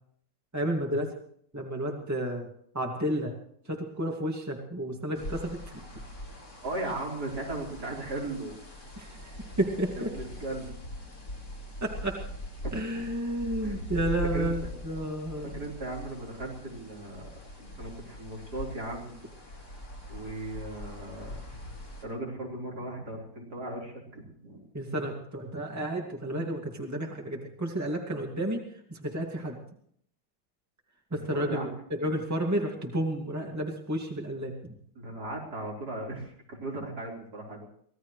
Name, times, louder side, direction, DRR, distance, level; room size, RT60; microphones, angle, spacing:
voice 1, 0.5-1.1 1.5-2.5 2.7-3.3 3.7-5.8 9.0-10.1 11.8-12.2 12.7-15.6 24.7-28.6 28.9-29.6 31.1-34.7, right 1 dB, 10° right, 1 dB, 2.2 m, -31 dB
sound 1, 5.1-22.0, left 1 dB, 70° left, 5.3 m, -41 dB
voice 2, 6.6-8.5 9.9-10.7 12.6-13.0 13.6-13.8 14.3-14.7 15.4-17.3 17.6-19.2 20.1-21.4 22.0-24.7 31.3-31.7 32.0-32.1 35.0-37.7, right 2 dB, 70° right, -3 dB, 4.8 m, -37 dB
24.5 x 17.5 x 3.2 m, 0.64 s
omnidirectional pair, 1.8 m